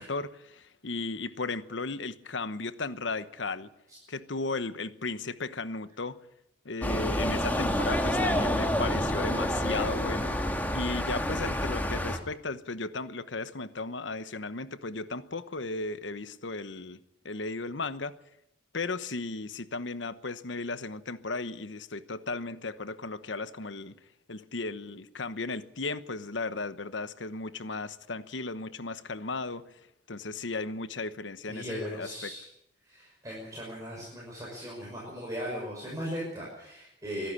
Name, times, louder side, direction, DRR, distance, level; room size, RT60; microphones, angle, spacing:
voice 1, 0.0-3.7 4.1-6.2 6.6-17.0 17.2-18.1 18.7-23.9 24.3-29.6 30.1-32.3, left 3 dB, 80° left, 13 dB, 1.1 m, -35 dB
sound 1, 6.8-12.2, equal, 10° left, 2.0 m, -28 dB
voice 2, 31.5-32.4 32.9-37.3, equal, 20° right, -4 dB, 5.9 m, -38 dB
24.0 x 11.5 x 9.8 m, 0.82 s
head